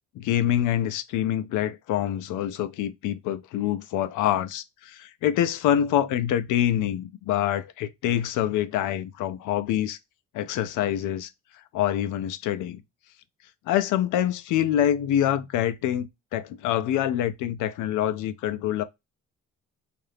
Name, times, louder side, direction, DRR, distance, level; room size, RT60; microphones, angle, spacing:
voice 1, 0.2-10.0 10.3-11.3 11.7-12.8 13.7-18.8, left 11 dB, 90° left, 0.5 m, -26 dB
2.7 x 2.4 x 3.3 m
cardioid pair, 90°, 30 cm